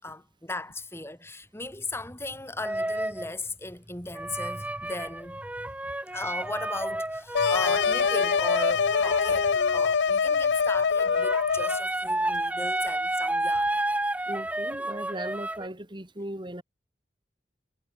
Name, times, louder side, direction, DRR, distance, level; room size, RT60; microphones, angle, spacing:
voice 1, 0.0-5.7 6.1-13.7, left 2 dB, 15° left, 5.3 m, -37 dB
sound 1, 2.6-3.3 4.1-9.8 11.0-15.7, right 1 dB, 10° right, 1.0 m, -31 dB
sound 2, 7.3-11.8, left 6 dB, 80° left, 0.5 m, -24 dB
voice 2, 14.3-16.6, right 1 dB, 25° right, 2.8 m, -37 dB
head